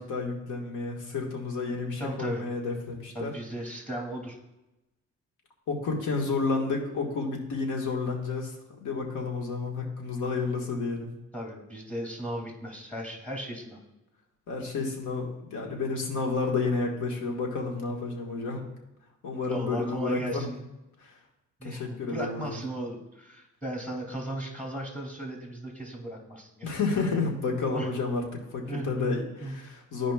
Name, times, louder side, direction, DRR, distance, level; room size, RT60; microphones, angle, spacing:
voice 1, 0.0-3.3 5.7-8.5 8.8-11.1 14.5-18.6 19.2-20.5 21.0-21.1 21.6-22.6 26.6-30.1, left 4 dB, 85° left, 0 dB, 1.6 m, -30 dB
voice 2, 2.0-2.5 3.1-4.4 11.3-13.8 19.4-20.6 21.6-26.7 27.7-27.9 28.7-29.5, right 1 dB, 5° left, -1 dB, 2.5 m, -36 dB
13.0 x 5.0 x 2.3 m, 0.96 s
cardioid pair, 90°, 30 cm